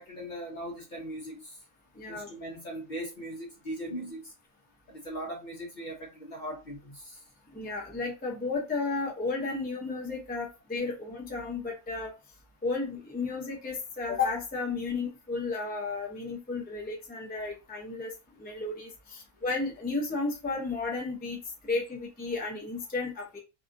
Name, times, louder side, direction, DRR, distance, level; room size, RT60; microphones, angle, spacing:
voice 1, 0.0-1.6 2.1-4.3 4.9-7.2, right 1 dB, 45° left, 0.8 m, -39 dB
voice 2, 1.9-2.3 7.5-12.1 12.6-23.4, left 3 dB, 10° left, 0.6 m, -33 dB
2.8 x 2.3 x 2.5 m
omnidirectional pair, 1.3 m